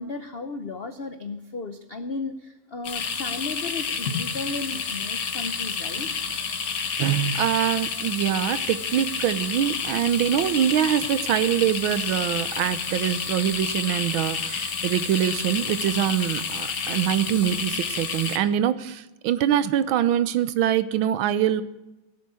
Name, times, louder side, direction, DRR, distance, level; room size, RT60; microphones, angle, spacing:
voice 1, 0.0-6.1, left 3 dB, 70° left, 8 dB, 0.5 m, -34 dB
sound 1, 2.8-18.4, left 6 dB, 50° left, 1.4 m, -29 dB
voice 2, 7.0-21.6, right 11 dB, 80° right, 14 dB, 1.5 m, -24 dB
17.0 x 7.5 x 8.4 m, 1.0 s
omnidirectional pair, 2.2 m